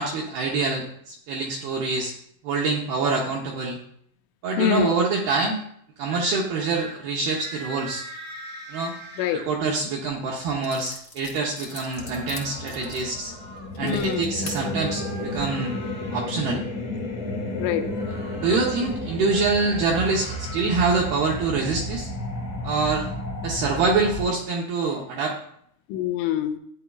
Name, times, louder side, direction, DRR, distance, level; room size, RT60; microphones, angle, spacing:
voice 1, 0.0-2.1 2.4-3.8 4.4-5.6 6.0-8.0 8.7-9.0 9.3-13.3 13.8-15.8 16.1-16.6 18.4-22.1 22.6-23.1 23.4-25.4, right 4 dB, 75° right, -2 dB, 2.3 m, -25 dB
voice 2, 4.6-4.9 9.2-9.4 13.8-14.3 17.6-17.9 25.9-26.6, left 10 dB, 85° left, 6 dB, 3.0 m, -25 dB
sound 1, 6.1-6.4 6.7-7.0 7.2-9.4 11.5-13.7 14.6-16.4 17.8-18.8 19.2-20.7, right 1 dB, 15° right, 1.5 m, -41 dB
sound 2, 10.1-10.2 10.6-14.6 15.2-15.4, left 3 dB, 65° left, 0.9 m, -41 dB
sound 3, 12.0-24.3, left 1 dB, 45° left, 2.9 m, -32 dB
15.0 x 9.8 x 2.4 m, 0.69 s
omnidirectional pair, 5.7 m